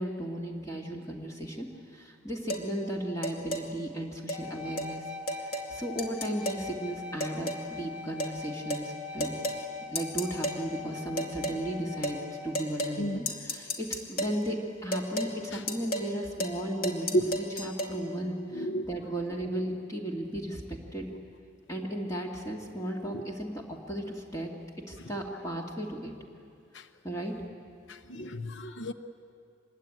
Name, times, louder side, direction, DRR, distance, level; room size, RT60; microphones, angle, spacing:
voice 1, 0.0-5.1 5.5-9.4 9.9-21.1 21.7-24.5 24.9-26.1 27.0-27.3, right 1 dB, 15° left, -1 dB, 2.2 m, -35 dB
sound 1, 2.5-2.7 3.2-3.7 4.3-4.4 4.8-4.9 5.3-5.7 6.0-6.7 7.2-7.7 8.2-8.4 8.7-8.9 9.2-9.6 10.0-10.6 11.2-11.6 12.0-12.2 12.5-13.0 13.3-14.4 14.9-15.3 15.7-16.1 16.4-16.6 16.8-17.9, equal, 50° left, 2.5 m, -33 dB
sound 2, 4.3-12.6, left 4 dB, 5° right, 1.3 m, -42 dB
voice 2, 16.8-17.4 18.5-18.9 23.1-23.2 26.7-26.9 27.9-28.9, right 1 dB, 65° left, 9 dB, 0.9 m, -32 dB
26.0 x 21.5 x 8.9 m, 2.4 s
head